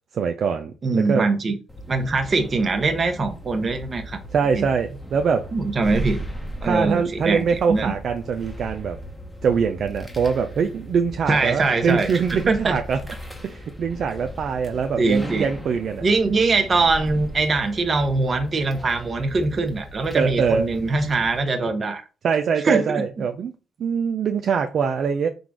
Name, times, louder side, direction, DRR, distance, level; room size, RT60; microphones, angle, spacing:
voice 1, 0.1-1.3 4.3-5.5 6.6-9.0 9.4-13.0 13.4-16.0 20.1-20.7 22.2-23.5 23.8-25.3, right 6 dB, 60° right, 0.4 m, -23 dB
voice 2, 0.8-1.5 1.9-4.2 4.5-4.7 5.5-6.2 6.6-7.9 11.3-12.8 15.0-15.5 16.0-22.0 22.6-23.0, right 3 dB, 40° right, 0.9 m, -22 dB
sound 1, 1.7-21.4, equal, 5° left, 0.9 m, -37 dB
3.8 x 2.4 x 4.5 m
cardioid pair, 90°, 0 cm